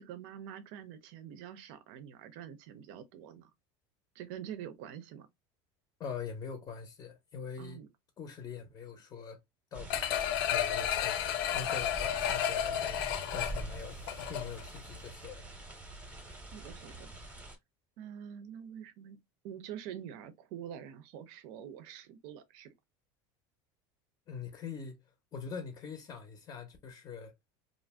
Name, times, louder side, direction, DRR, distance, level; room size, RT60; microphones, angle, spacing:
voice 1, 0.0-3.5 4.1-5.3 7.6-7.9 16.5-17.1 18.0-19.2 19.4-22.7, right 9 dB, 65° right, 0.5 m, -46 dB
voice 2, 6.0-7.8 8.2-9.4 9.7-13.0 13.3-15.5 24.3-25.0 25.3-27.3, left 6 dB, 30° left, 0.6 m, -43 dB
sound 1, 9.7-17.6, right 2 dB, 10° right, 0.7 m, -45 dB
sound 2, 9.9-14.7 15.1-15.2, left 10 dB, 85° left, 0.5 m, -32 dB
2.5 x 2.0 x 3.3 m
supercardioid pair, 140°, 12 cm